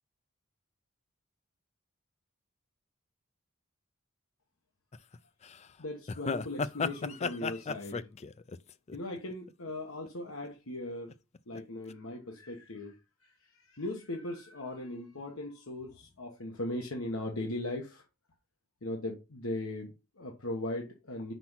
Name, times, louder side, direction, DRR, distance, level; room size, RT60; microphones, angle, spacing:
sound 1, 4.9-5.2 5.4-5.6 6.1-9.7 10.0-10.4 11.1-11.6 11.9-12.0, left 4 dB, 30° left, 0.4 m, -35 dB
voice 1, 5.8-8.1 8.9-11.1 11.5-18.0 18.8-21.3, left 1 dB, 80° left, 2 dB, 1.3 m, -39 dB
6.0 x 5.9 x 5.7 m, 0.28 s
head